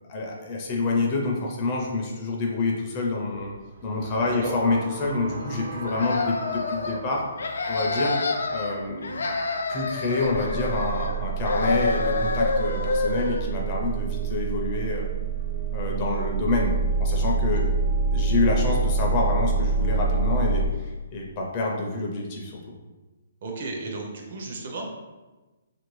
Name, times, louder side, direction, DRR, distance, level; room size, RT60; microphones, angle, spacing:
voice 1, 0.1-3.5 3.8-7.2 7.7-8.1 8.5-9.3 9.7-15.1 15.7-16.7 17.0-17.7 18.1-22.6, left 3 dB, 25° left, -2 dB, 0.4 m, -27 dB
sound 1, 3.9-7.7 10.2-20.7, right 4 dB, 85° right, 1.1 m, -27 dB
sound 2, 5.8-7.0 7.4-8.7 9.0-11.2 11.4-13.4, left 3 dB, 85° left, 0.4 m, -27 dB
voice 2, 23.4-24.9, right 3 dB, 45° right, 1 dB, 0.6 m, -34 dB
2.9 x 2.5 x 3.1 m, 1.2 s
hypercardioid pair, 170°, 0 cm